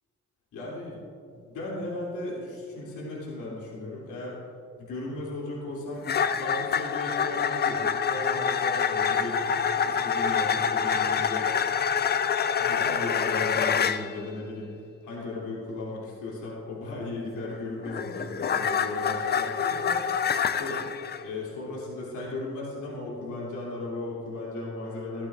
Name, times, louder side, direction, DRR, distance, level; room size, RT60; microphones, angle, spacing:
voice 1, 0.5-1.0 1.3-4.4 4.8-11.5 12.6-14.7 15.0-20.8 21.2-25.3, left 2 dB, 80° left, -5 dB, 2.8 m, -36 dB
sound 1, 6.1-14.0 17.4-21.2, left 7 dB, 35° left, 0.5 m, -26 dB
13.5 x 12.0 x 2.4 m, 2.5 s
cardioid pair, 90°, 30 cm